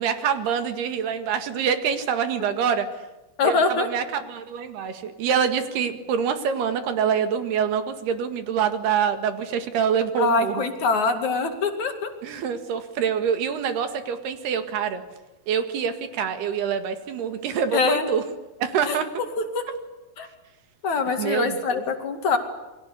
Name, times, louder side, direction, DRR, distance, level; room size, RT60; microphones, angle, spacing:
voice 1, 0.0-2.9 3.4-10.6 12.2-15.0 15.5-18.2 18.6-19.1 21.2-21.8, right 7 dB, 80° right, 9 dB, 4.0 m, -25 dB
voice 2, 3.4-3.9 10.2-12.1 17.7-18.0 18.9-19.0 19.5-19.6 20.2-20.3 20.8-22.4, left 4 dB, 50° left, 6 dB, 3.4 m, -23 dB
28.5 x 22.5 x 8.2 m, 1.1 s
omnidirectional pair, 4.5 m